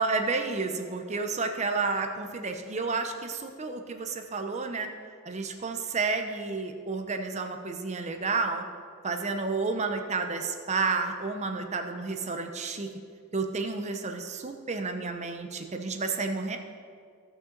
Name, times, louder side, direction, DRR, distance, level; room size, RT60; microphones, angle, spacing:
voice 1, 0.0-4.9 5.2-8.6 9.0-12.9 13.3-16.6, right 4 dB, 30° right, 6 dB, 0.7 m, -31 dB
16.5 x 5.9 x 3.9 m, 2.2 s
head